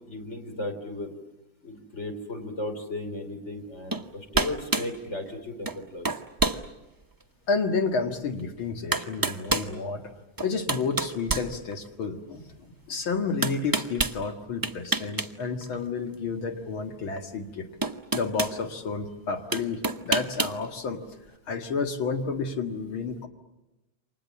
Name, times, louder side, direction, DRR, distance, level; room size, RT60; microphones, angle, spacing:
voice 1, 0.1-1.1 1.6-6.1, left 1 dB, 35° left, 5 dB, 3.6 m, -35 dB
sound 1, 3.9-4.1 4.3-4.9 5.7-5.8 6.0-6.6 7.2-7.3 8.4-8.5 8.9-9.7 10.4-12.1 13.4-14.2 14.6-15.3 15.6-15.8 17.2-17.3 17.8-18.6 19.5-20.6, right 3 dB, 30° right, 0.4 m, -27 dB
voice 2, 7.5-10.0 10.4-12.4 12.9-17.7 18.1-21.0 21.5-23.3, left 4 dB, 80° left, 5 dB, 2.8 m, -30 dB
29.0 x 25.0 x 7.5 m, 0.99 s
omnidirectional pair, 2.2 m